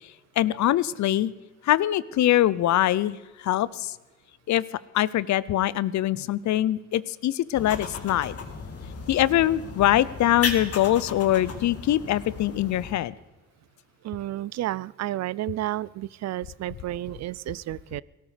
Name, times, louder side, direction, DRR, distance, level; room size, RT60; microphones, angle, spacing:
voice 1, 0.4-1.3 1.6-3.2 3.4-3.9 4.5-4.6 4.9-8.3 9.1-13.1, left 13 dB, 65° left, 19 dB, 0.7 m, -23 dB
Squirrel chirping, 7.5-12.9, left 5 dB, 50° left, 2.2 m, -35 dB
voice 2, 14.0-18.0, right 14 dB, 60° right, 22 dB, 0.4 m, -31 dB
18.0 x 14.0 x 5.1 m, 1.2 s
cardioid pair, 90°, 30 cm